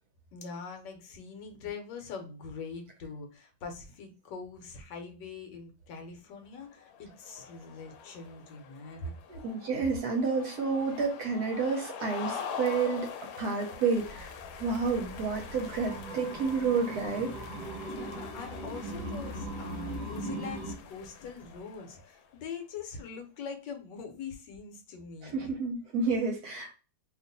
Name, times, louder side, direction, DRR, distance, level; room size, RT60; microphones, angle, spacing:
voice 1, 0.3-9.1 17.9-25.4, left 5 dB, 70° left, 4 dB, 1.3 m, -43 dB
Football-crowd-near-miss-from-freekick, 6.7-22.3, left 6 dB, 90° left, 1.3 m, -44 dB
voice 2, 9.3-13.1 13.4-17.3 25.2-26.7, right 4 dB, 65° right, 2 dB, 1.1 m, -30 dB
sound 1, 13.9-20.7, right 1 dB, 40° right, 0.6 m, -40 dB
2.9 x 2.5 x 3.8 m, 0.33 s
omnidirectional pair, 2.0 m